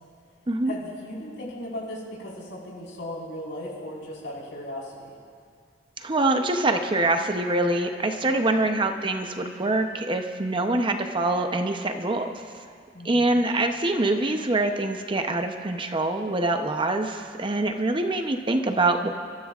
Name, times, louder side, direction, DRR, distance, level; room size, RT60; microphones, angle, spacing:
voice 1, 0.6-5.2 8.5-8.7 12.9-13.4, left 1 dB, 80° left, -4 dB, 4.6 m, -37 dB
voice 2, 6.0-12.4 13.0-19.1, right 2 dB, 25° right, 5 dB, 0.7 m, -24 dB
28.5 x 14.0 x 2.4 m, 2.1 s
head